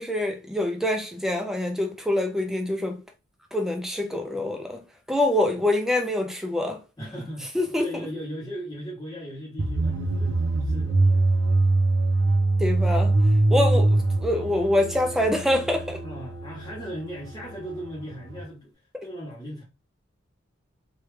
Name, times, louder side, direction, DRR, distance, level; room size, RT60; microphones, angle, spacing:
voice 1, 0.0-3.0 3.5-4.8 5.1-6.8 7.5-7.9 12.6-13.2 13.5-16.0, left 1 dB, ahead, 0.4 m, -25 dB
voice 2, 7.0-11.3 13.7-13.8 16.0-18.7 19.0-19.6, equal, 20° left, 0.8 m, -37 dB
sound 1, 9.6-18.4, right 2 dB, 65° right, 0.5 m, -24 dB
3.2 x 2.3 x 3.2 m
head